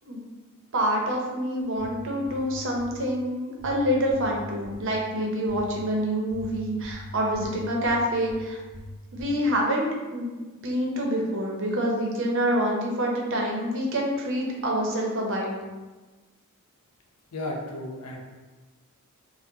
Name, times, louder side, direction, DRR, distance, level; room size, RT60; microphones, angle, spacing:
voice 1, 0.7-8.6 9.1-9.9 10.1-10.3 10.6-15.5, equal, 55° right, -1 dB, 0.7 m, -26 dB
sound 1, 1.7-3.0 3.6-5.0 5.4-5.8 6.3-8.4 8.7-9.3, left 2 dB, 45° left, 1.2 m, -42 dB
voice 2, 17.3-18.2, left 1 dB, 85° left, 0 dB, 0.7 m, -33 dB
4.6 x 2.1 x 2.7 m, 1.2 s
head